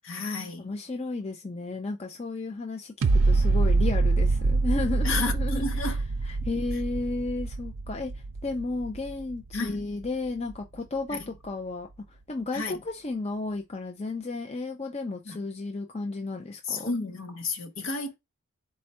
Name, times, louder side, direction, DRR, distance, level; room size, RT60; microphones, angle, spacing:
voice 1, 0.0-0.7 5.0-6.0 9.5-9.9 11.1-11.2 12.5-12.8 15.3-15.4 16.7-18.2, left 3 dB, 60° left, 0.9 m, -31 dB
voice 2, 0.6-16.9, left 3 dB, 30° left, 0.5 m, -33 dB
sound 1, 3.0-10.1 10.5-10.6, right 3 dB, 65° right, 0.4 m, -25 dB
4.3 x 2.4 x 4.2 m
head